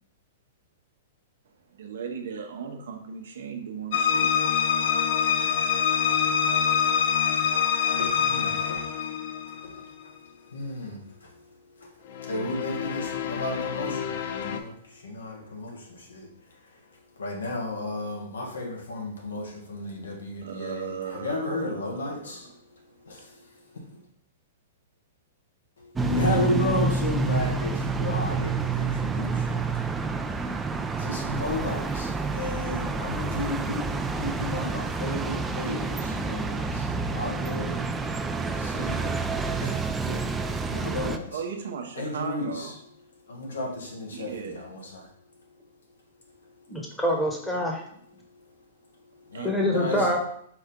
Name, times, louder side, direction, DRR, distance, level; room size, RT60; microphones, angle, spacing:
voice 1, 1.7-4.4 20.4-22.5 41.3-42.8 44.1-44.6 49.3-50.1, right 6 dB, 75° right, 4 dB, 0.8 m, -37 dB
sound 1, 3.9-9.8 12.1-14.6, left 7 dB, 60° left, 0.4 m, -25 dB
voice 2, 5.4-5.7 6.1-22.5 23.0-23.9 25.8-29.8 30.3-33.9 34.2-39.3 39.6-41.4 42.0-42.7 43.2-45.1 46.4-46.5 48.4-48.5 49.1-50.1, left 2 dB, 90° left, 0 dB, 1.2 m, -34 dB
sound 2, 26.0-41.2, right 4 dB, 10° right, 0.3 m, -28 dB
voice 3, 46.7-47.8 49.4-50.2, equal, 5° left, 0 dB, 1.0 m, -25 dB
4.8 x 2.7 x 3.6 m, 0.67 s
hypercardioid pair, 125°, 0 cm